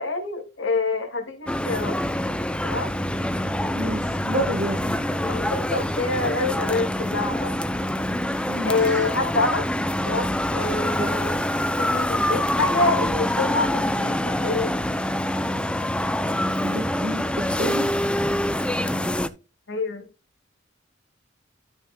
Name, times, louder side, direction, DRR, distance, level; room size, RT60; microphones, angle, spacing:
voice 1, 0.0-2.0 2.6-2.9 5.3-7.5 8.6-9.7 10.1-11.4 11.8-14.8 19.7-20.1, left 3 dB, 70° left, 2.3 m, -26 dB
sound 1, 1.5-19.3, left 1 dB, 5° left, 0.5 m, -25 dB
voice 2, 3.7-5.0 8.5-9.0 11.0-11.1 16.6-17.2 17.6-17.9, right 1 dB, 45° right, 1.4 m, -29 dB
13.0 x 6.3 x 2.3 m
head